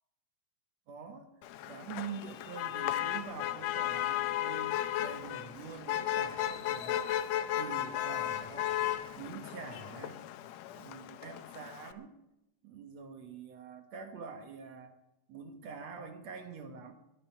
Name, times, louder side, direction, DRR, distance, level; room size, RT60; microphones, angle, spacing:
voice 1, 0.9-1.3 1.7-4.7 5.0-7.1 7.6-8.8 9.2-10.2 10.7-12.1 12.6-14.9 15.3-16.9, right 5 dB, 65° right, 7 dB, 2.3 m, -45 dB
Motor vehicle (road), 1.4-11.9, left 12 dB, 75° left, 1.8 m, -35 dB
sound 1, 1.9-9.3, left 1 dB, 40° left, 5.1 m, -61 dB
20.5 x 10.5 x 5.7 m, 0.91 s
omnidirectional pair, 3.4 m